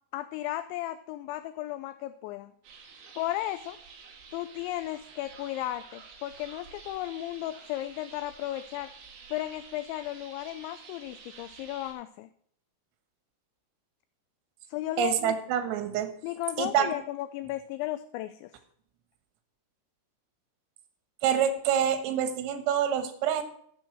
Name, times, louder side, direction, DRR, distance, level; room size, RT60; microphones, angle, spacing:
voice 1, 0.1-2.5 3.2-3.8 4.3-8.9 9.3-12.3 14.7-15.4 16.2-18.5, left 14 dB, 90° left, 12 dB, 2.6 m, -35 dB
sound 1, 2.6-11.9, right 5 dB, 65° right, 4.0 m, -50 dB
voice 2, 15.0-16.2 16.6-16.9 21.2-23.4, right 9 dB, 90° right, 9 dB, 3.9 m, -26 dB
13.5 x 6.4 x 6.1 m, 0.64 s
omnidirectional pair, 5.8 m